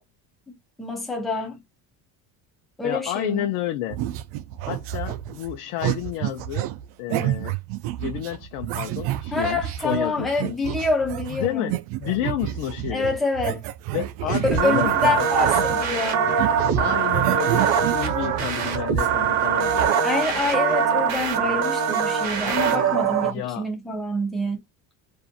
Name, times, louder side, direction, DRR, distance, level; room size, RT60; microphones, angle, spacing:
voice 1, 0.5-1.6 2.8-3.5 9.3-11.8 12.9-13.6 14.3-16.3 20.0-24.6, left 2 dB, ahead, 0.3 m, -26 dB
voice 2, 2.8-4.0 4.6-6.7 7.0-7.6 8.0-10.6 11.4-13.1 13.9-15.3 16.8-19.9 23.2-23.7, left 13 dB, 75° left, 0.7 m, -30 dB
sound 1, 3.9-16.0 16.2-19.9, right 14 dB, 90° right, 0.6 m, -30 dB
sound 2, 14.5-23.3, right 7 dB, 40° right, 0.7 m, -22 dB
2.6 x 2.5 x 2.6 m
cardioid pair, 180°, 40 cm